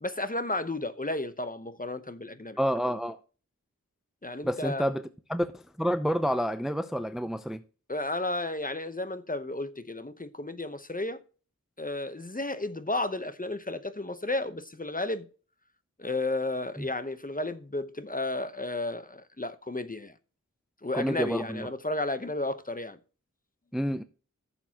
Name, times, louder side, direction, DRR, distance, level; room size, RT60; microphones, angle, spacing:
voice 1, 0.0-2.6 4.2-4.8 7.9-11.2 11.8-15.3 16.0-20.1 20.8-23.0, left 2 dB, 25° left, 0.9 m, -33 dB
voice 2, 2.6-3.2 4.4-5.0 5.3-7.6 16.8-16.9 20.9-21.7 23.7-24.0, equal, ahead, 0.5 m, -29 dB
15.0 x 7.0 x 2.9 m
wide cardioid pair, 55°, 33 cm